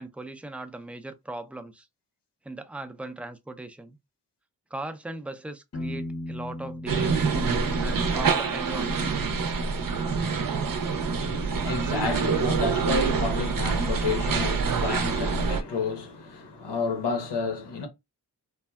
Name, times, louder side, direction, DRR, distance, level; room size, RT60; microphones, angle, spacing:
voice 1, 0.0-1.9 2.4-4.0 4.7-7.3 7.8-9.1, right 2 dB, 5° right, 0.3 m, -39 dB
Piano, 5.7-9.4, left 1 dB, 40° left, 0.6 m, -39 dB
sound 1, 6.9-15.6, right 5 dB, 55° right, 0.6 m, -26 dB
voice 2, 11.2-17.9, left 4 dB, 85° left, 0.9 m, -30 dB
3.4 x 2.1 x 2.2 m
wide cardioid pair, 85°, 40 cm